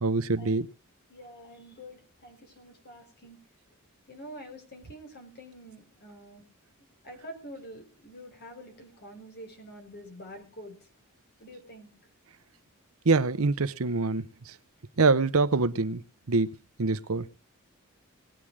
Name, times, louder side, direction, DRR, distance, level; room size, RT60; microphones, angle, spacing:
voice 1, 0.0-0.7 13.1-14.2 15.0-16.0 16.3-16.5 16.8-17.3, right 3 dB, 70° right, 14 dB, 0.8 m, -24 dB
voice 2, 1.1-3.4 4.1-6.4 7.0-10.9 11.4-11.9, equal, 50° left, 5 dB, 4.8 m, -47 dB
19.5 x 8.7 x 4.8 m, 0.32 s
head